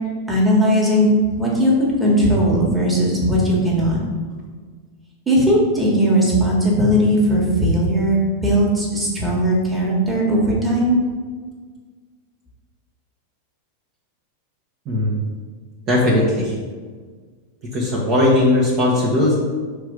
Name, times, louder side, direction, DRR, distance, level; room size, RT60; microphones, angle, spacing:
voice 1, 0.3-1.1 1.4-4.0 5.3-11.0, equal, 10° right, -5 dB, 1.6 m, -18 dB
voice 2, 14.8-15.2 15.9-16.6 17.6-19.4, left 1 dB, 35° right, -4 dB, 1.1 m, -18 dB
5.9 x 3.4 x 5.1 m, 1.5 s
figure-of-eight pair, 90°, 0 cm